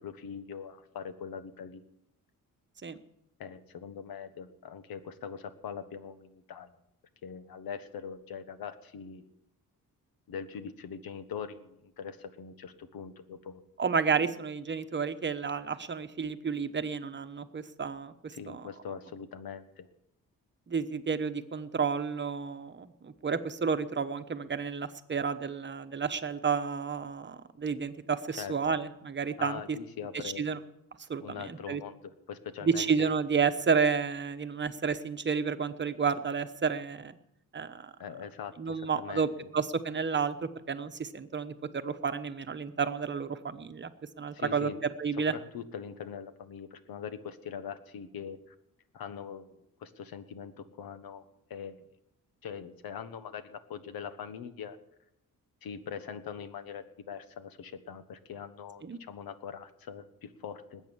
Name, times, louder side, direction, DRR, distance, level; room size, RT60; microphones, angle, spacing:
voice 1, 0.0-1.8 3.4-6.8 7.2-9.2 10.3-13.6 18.3-19.9 28.4-28.8 29.4-30.5 31.2-33.1 38.0-39.5 44.3-44.8 45.3-48.5 48.9-49.5 49.8-51.2 51.5-51.8 52.4-54.8 55.6-60.8, left 7 dB, 85° left, 11 dB, 1.4 m, -42 dB
voice 2, 13.8-18.6 20.7-29.8 30.2-30.6 31.1-31.8 32.6-37.2 37.5-37.9 38.6-41.5 41.8-43.9 44.2-44.7 45.0-45.3 58.8-59.0, right 5 dB, 30° right, 10 dB, 1.0 m, -31 dB
20.0 x 8.9 x 7.2 m, 0.80 s
cardioid pair, 115°, 35 cm